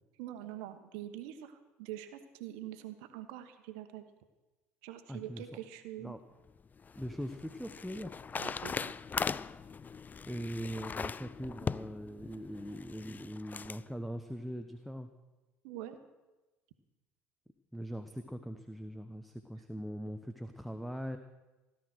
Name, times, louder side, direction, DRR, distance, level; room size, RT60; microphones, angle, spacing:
voice 1, 0.2-4.0 4.8-6.1 8.3-8.9 15.6-16.0, right 12 dB, 65° right, 9 dB, 1.3 m, -44 dB
voice 2, 5.1-5.4 6.0-6.2 6.9-8.1 10.3-15.1 17.7-21.2, equal, ahead, 8 dB, 1.0 m, -41 dB
sound 1, 6.5-13.8, left 5 dB, 25° left, 0.4 m, -40 dB
17.0 x 12.0 x 6.3 m, 1.1 s
figure-of-eight pair, 60°, 7 cm